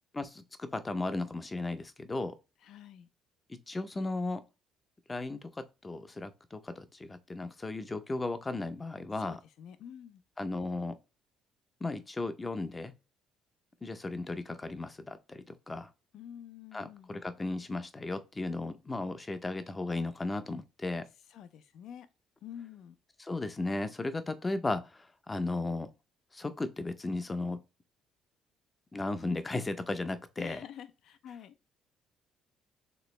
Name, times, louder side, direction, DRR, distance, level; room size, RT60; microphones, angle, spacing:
voice 1, 0.1-2.4 3.5-4.4 5.1-9.4 10.4-11.0 11.8-12.9 13.8-15.9 16.7-21.1 23.2-25.9 26.3-27.6 28.9-30.6, left 2 dB, 20° left, 0.5 m, -35 dB
voice 2, 2.6-3.1 9.2-10.2 16.1-17.1 21.3-22.1 22.4-23.0 30.4-31.7, left 9 dB, 70° left, 0.5 m, -48 dB
3.3 x 2.9 x 3.1 m
cardioid pair, 95°, 0 cm